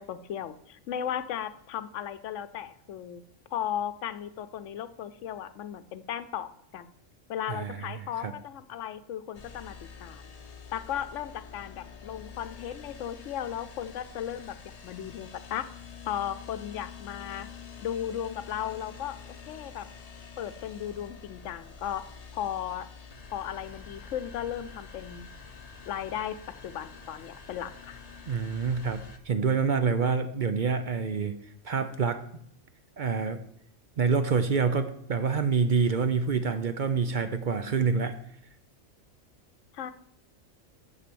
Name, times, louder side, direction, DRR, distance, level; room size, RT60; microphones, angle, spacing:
voice 1, 0.0-3.2 3.5-6.9 7.3-9.8 10.0-10.2 10.7-14.6 14.8-15.7 16.1-17.5 17.8-19.2 19.5-19.9 20.4-22.0 22.3-22.9 23.3-25.3 25.9-26.4 26.6-28.0 39.7-39.9, left 10 dB, 90° left, 13 dB, 1.0 m, -36 dB
voice 2, 7.5-8.3 28.3-31.3 31.6-32.2 33.0-33.4 34.0-38.2, right 5 dB, 50° right, 10 dB, 0.6 m, -27 dB
sound 1, 9.3-29.2, left 6 dB, 35° left, 0.9 m, -47 dB
7.4 x 6.6 x 6.9 m, 0.73 s
omnidirectional pair, 1.2 m